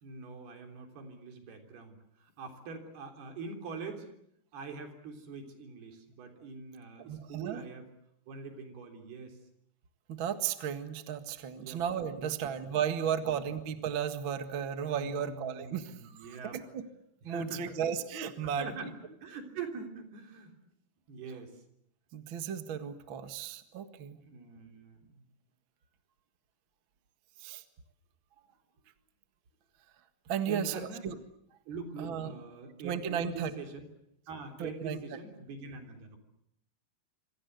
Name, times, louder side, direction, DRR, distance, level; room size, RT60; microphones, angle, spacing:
voice 1, 0.0-4.1 4.5-7.9 8.3-9.4 11.5-11.8 12.1-12.4 12.9-13.5 14.8-16.6 17.3-17.8 18.4-18.9 19.2-20.5 21.1-21.6 24.2-25.2 30.5-31.1 31.7-33.9 34.3-36.2, right 3 dB, 75° right, 4 dB, 5.5 m, -44 dB
voice 2, 7.1-7.6 10.1-16.8 17.2-18.7 22.1-24.2 27.4-27.6 30.3-31.2 32.0-32.3 32.8-33.5 34.6-35.0, right 8 dB, 45° right, 8 dB, 1.7 m, -34 dB
27.0 x 24.5 x 8.1 m, 0.75 s
omnidirectional pair, 4.6 m